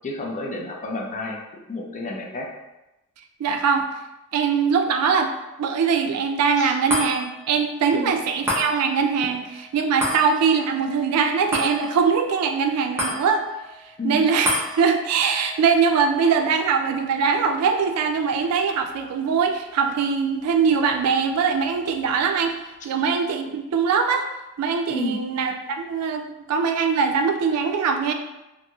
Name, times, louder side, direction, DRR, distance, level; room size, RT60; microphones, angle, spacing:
voice 1, 0.0-1.4 1.7-2.5 6.6-6.7 7.9-8.1 14.0-14.3 24.9-25.2, left 2 dB, 35° left, 0 dB, 0.4 m, -30 dB
voice 2, 3.4-3.9 4.3-5.3 5.6-13.4 14.0-22.5 22.8-24.3 24.6-28.1, right 6 dB, 85° right, 5 dB, 0.3 m, -22 dB
sound 1, 6.9-19.5 19.9-20.0, left 1 dB, 10° right, 0.6 m, -33 dB
2.9 x 2.5 x 2.2 m, 0.99 s
head